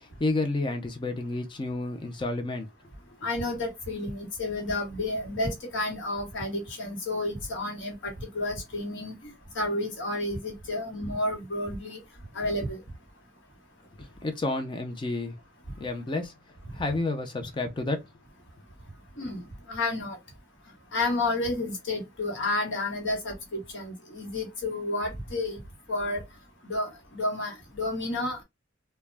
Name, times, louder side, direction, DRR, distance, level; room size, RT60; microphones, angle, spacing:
voice 1, 0.0-2.7 14.0-15.4 15.8-16.3 16.7-18.0, left 2 dB, 25° left, 0.4 m, -30 dB
voice 2, 3.2-12.0 12.3-12.8 19.2-19.4 19.7-20.2 20.9-25.6 25.9-26.2 26.6-28.4, left 2 dB, 65° left, 1.1 m, -31 dB
2.2 x 2.1 x 3.2 m
head